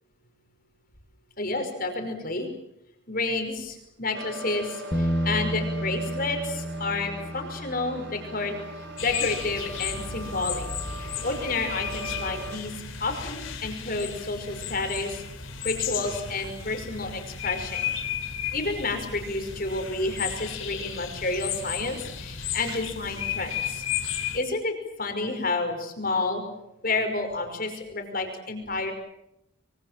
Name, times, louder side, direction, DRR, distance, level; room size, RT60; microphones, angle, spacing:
voice 1, 1.4-2.5 3.1-10.7 11.0-12.7 13.0-15.2 15.6-17.9 18.5-23.8 24.3-26.4 26.8-28.9, left 3 dB, 45° left, 5 dB, 5.4 m, -30 dB
sound 1, 4.1-12.5, right 1 dB, 55° right, 4.3 m, -40 dB
Bass guitar, 4.9-11.2, equal, 20° left, 1.3 m, -33 dB
sound 2, 9.0-24.4, left 8 dB, 80° left, 4.1 m, -34 dB
25.5 x 24.5 x 7.5 m, 0.84 s
head